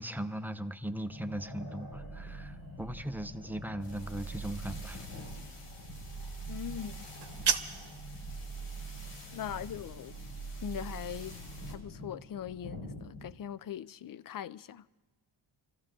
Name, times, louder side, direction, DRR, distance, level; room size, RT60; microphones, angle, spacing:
voice 1, 0.0-5.0, right 1 dB, 5° right, 0.6 m, -38 dB
sound 1, 1.1-13.3, left 2 dB, 60° left, 4.0 m, -48 dB
sound 2, 1.9-11.7, right 4 dB, 85° left, 2.2 m, -44 dB
voice 2, 6.5-7.1 9.3-10.1 10.6-11.4 11.7-14.9, left 9 dB, 45° left, 0.4 m, -40 dB
sound 3, 7.0-8.0, right 6 dB, 55° right, 1.0 m, -32 dB
24.0 x 14.0 x 3.7 m
cardioid pair, 75°, 50 cm